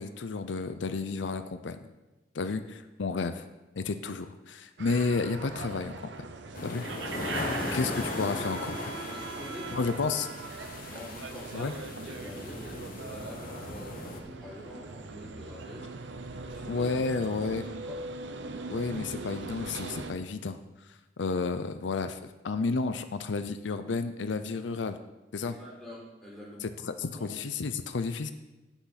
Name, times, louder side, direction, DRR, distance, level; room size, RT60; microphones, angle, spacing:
voice 1, 0.0-1.9 2.3-3.5 3.7-6.3 6.6-6.9 7.7-8.9 9.7-10.3 11.5-11.7 16.7-17.7 18.7-20.6 21.2-25.0 25.3-25.5 26.6-28.3, left 4 dB, 90° left, 10 dB, 0.6 m, -31 dB
sound 1, 4.8-20.1, right 3 dB, 80° right, 0.8 m, -40 dB
sound 2, 6.5-14.2, left 2 dB, 50° left, 1.1 m, -38 dB
voice 2, 9.1-10.2 10.8-11.8 12.0-15.9 16.4-17.0 17.9-18.0 25.4-26.8 27.1-27.3, equal, 5° left, -7 dB, 4.1 m, -46 dB
16.5 x 5.9 x 4.2 m, 1.1 s
head